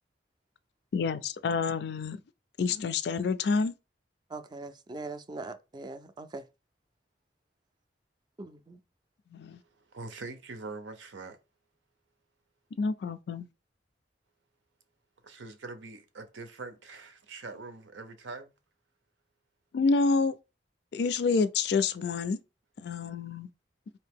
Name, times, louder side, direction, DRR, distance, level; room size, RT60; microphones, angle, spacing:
voice 1, 0.9-2.2 2.6-3.7 9.3-9.6 12.8-13.5 19.7-20.4 20.9-22.4 22.8-23.5, left 4 dB, 60° left, 0.3 m, -28 dB
voice 2, 4.3-6.4 8.4-8.8, right 2 dB, 25° right, 0.3 m, -41 dB
voice 3, 9.5-11.4 15.2-18.5, right 3 dB, 90° right, 0.7 m, -43 dB
4.1 x 2.8 x 3.5 m
head